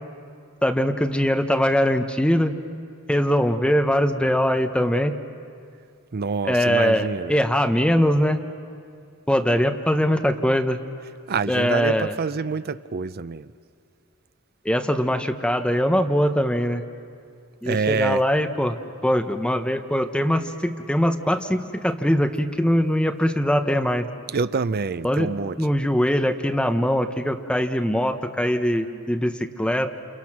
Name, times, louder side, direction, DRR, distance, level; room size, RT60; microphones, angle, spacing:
voice 1, 0.6-2.5 3.1-5.1 6.4-8.4 9.3-10.8 11.5-12.2 14.6-16.8 17.6-18.8 19.0-24.1 25.0-25.3 25.6-29.9, equal, 5° left, 6 dB, 1.0 m, -22 dB
voice 2, 6.1-7.3 11.3-13.5 17.7-18.2 24.3-25.6, right 5 dB, 45° right, 14 dB, 0.5 m, -26 dB
29.5 x 28.5 x 6.0 m, 2.3 s
head